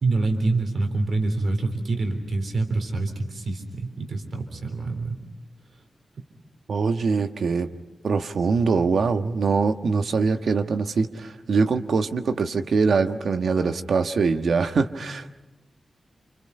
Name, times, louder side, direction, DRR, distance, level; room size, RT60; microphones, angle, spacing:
voice 1, 0.0-5.2, right 3 dB, 70° right, 5 dB, 3.5 m, -26 dB
voice 2, 6.7-7.7 8.0-15.4, right 4 dB, 85° right, 7 dB, 1.4 m, -23 dB
29.0 x 28.0 x 5.5 m, 1.1 s
wide cardioid pair, 160°, 0 cm